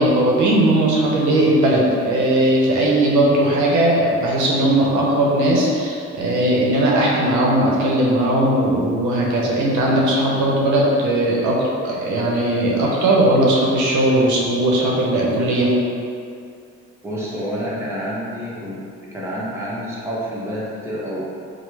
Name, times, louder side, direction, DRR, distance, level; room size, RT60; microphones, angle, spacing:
voice 1, 0.0-11.6 11.8-15.7, right 1 dB, 75° right, -3 dB, 0.6 m, -18 dB
voice 2, 17.0-18.8 19.1-21.3, equal, 10° right, -7 dB, 0.7 m, -28 dB
3.0 x 2.0 x 3.2 m, 2.4 s
cardioid pair, 90°, 30 cm